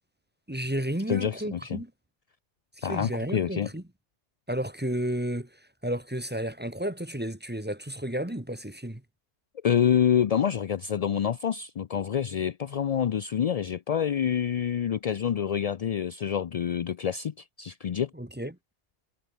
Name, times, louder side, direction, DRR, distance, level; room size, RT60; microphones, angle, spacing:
voice 1, 0.5-1.9 2.8-3.8 4.5-5.5 5.8-9.0 18.1-18.5, right 1 dB, 10° right, 1.7 m, -32 dB
voice 2, 1.1-1.8 2.8-3.7 9.6-18.1, left 8 dB, 65° left, 0.3 m, -27 dB
omnidirectional pair, 1.2 m